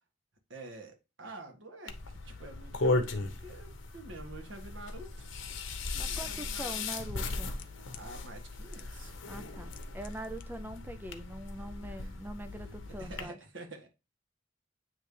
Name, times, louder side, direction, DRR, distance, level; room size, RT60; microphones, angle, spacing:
voice 1, 0.5-5.3 5.9-6.9 7.7-9.3 11.6-12.1 12.8-13.9, right 2 dB, 75° right, 1.6 m, -48 dB
sound 1, 1.9-13.2, left 3 dB, 85° left, 1.0 m, -37 dB
voice 2, 5.9-7.5 9.3-13.4, right 1 dB, 10° right, 0.3 m, -43 dB
sound 2, 7.6-8.1 8.7-9.1 9.4-10.4 10.7-10.8, left 10 dB, 45° left, 0.6 m, -52 dB
9.2 x 3.2 x 3.2 m
head